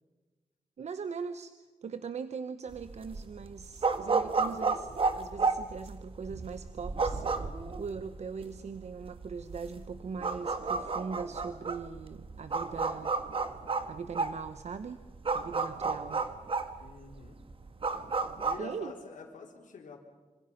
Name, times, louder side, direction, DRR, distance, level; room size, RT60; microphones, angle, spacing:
voice 1, 0.8-1.5 1.8-13.1 13.9-15.0 15.3-16.3 18.6-18.9, right 5 dB, 60° right, 11 dB, 1.0 m, -40 dB
sound 1, 2.7-18.6, right 4 dB, 45° right, 1.6 m, -32 dB
voice 2, 16.8-17.4 18.4-20.0, left 5 dB, 85° left, 0 dB, 4.0 m, -47 dB
27.0 x 26.0 x 5.8 m, 1.3 s
wide cardioid pair, 125°, 13 cm